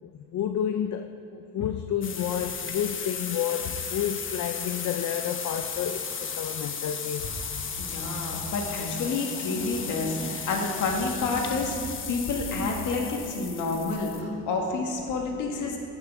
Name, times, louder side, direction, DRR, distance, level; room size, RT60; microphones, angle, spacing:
voice 1, 0.0-7.2, left 9 dB, 65° left, 7 dB, 0.7 m, -30 dB
sound 1, 2.0-14.2, left 6 dB, 40° left, 1.0 m, -35 dB
voice 2, 7.8-15.8, left 3 dB, 85° left, 1 dB, 1.9 m, -29 dB
15.5 x 6.8 x 6.1 m, 2.7 s
cardioid pair, 90°, 30 cm